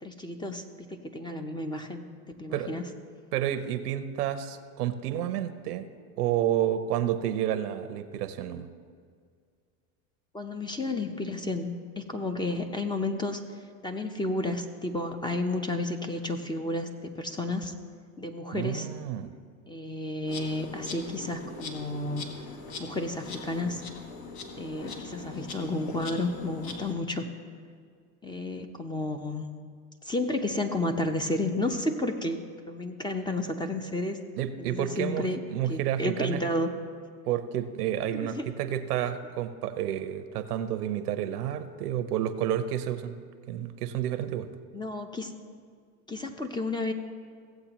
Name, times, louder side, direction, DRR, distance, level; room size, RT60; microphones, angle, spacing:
voice 1, 0.0-0.6 0.9-2.0 2.4-2.8 10.3-13.4 13.8-17.7 18.2-18.9 19.7-22.2 22.8-23.8 24.6-27.3 28.2-29.4 30.0-32.4 32.7-34.2 34.6-36.7 38.1-38.4 44.7-45.3 46.1-46.9, left 2 dB, 10° left, 6 dB, 0.7 m, -31 dB
voice 2, 3.3-5.9 6.2-8.7 18.5-19.3 34.4-36.4 37.3-43.1 43.5-44.5, right 11 dB, 85° right, 11 dB, 0.8 m, -30 dB
Insect, 20.3-26.9, left 3 dB, 50° left, 1.5 m, -41 dB
16.5 x 7.9 x 3.0 m, 2.1 s
supercardioid pair, 100°, 45 cm